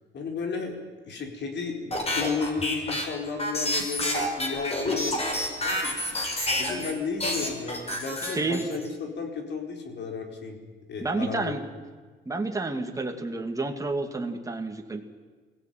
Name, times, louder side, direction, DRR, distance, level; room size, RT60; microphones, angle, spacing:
voice 1, 0.1-0.8 1.1-5.3 5.6-10.6 10.9-11.5, left 5 dB, 60° left, 3 dB, 4.3 m, -33 dB
sound 1, 1.9-6.9 7.2-8.9, left 1 dB, 30° left, 5.5 m, -28 dB
voice 2, 8.2-8.6 11.0-11.6 12.3-15.0, right 3 dB, 15° right, 4 dB, 2.5 m, -30 dB
21.5 x 16.5 x 9.3 m, 1.4 s
cardioid pair, 90°, 20 cm